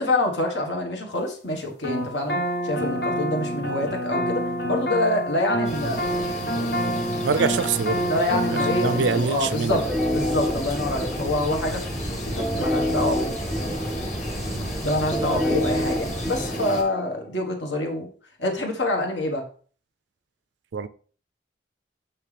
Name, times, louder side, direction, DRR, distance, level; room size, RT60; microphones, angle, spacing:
voice 1, 0.0-2.4 2.6-6.0 8.1-9.8 10.1-13.3 14.8-18.1 18.4-19.4, left 1 dB, 80° left, 1.5 m, -26 dB
sound 1, 1.8-9.2, equal, 60° left, 1.0 m, -27 dB
sound 2, 5.6-16.8, equal, 40° left, 1.7 m, -34 dB
voice 2, 7.2-9.9 14.5-14.7 20.7-20.9, right 5 dB, 80° right, 0.4 m, -25 dB
sound 3, 9.7-17.3, equal, ahead, 0.5 m, -28 dB
6.1 x 5.8 x 3.4 m
head